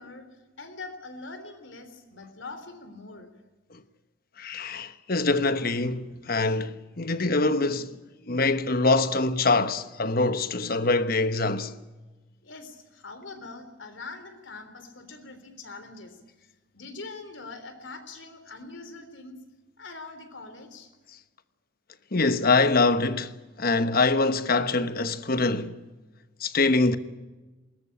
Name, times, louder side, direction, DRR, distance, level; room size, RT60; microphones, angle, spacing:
voice 1, 0.0-3.3 12.4-16.2 16.7-19.4 19.8-20.9, left 3 dB, 70° left, 3.6 m, -43 dB
voice 2, 4.4-8.0 8.3-11.7 22.1-25.8 26.4-27.0, left 3 dB, 50° left, 1.1 m, -24 dB
21.0 x 19.0 x 8.6 m
head